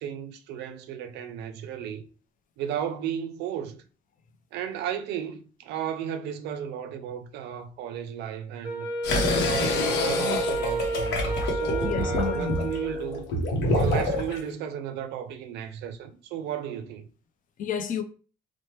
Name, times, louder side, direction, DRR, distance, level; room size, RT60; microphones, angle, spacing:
voice 1, 0.0-2.0 2.6-3.8 4.5-8.9 9.4-13.2 13.7-17.1, right 9 dB, 80° right, 0.4 m, -34 dB
Wind instrument woodwind instrument, 8.6-13.3, equal, 25° left, 1.1 m, -31 dB
sound 1, 9.0-14.4, left 1 dB, 85° left, 0.8 m, -27 dB
voice 2, 9.1-9.5 11.8-12.7 17.6-18.0, left 6 dB, 50° left, 0.5 m, -31 dB
2.9 x 2.1 x 3.0 m
cardioid pair, 110°, 17 cm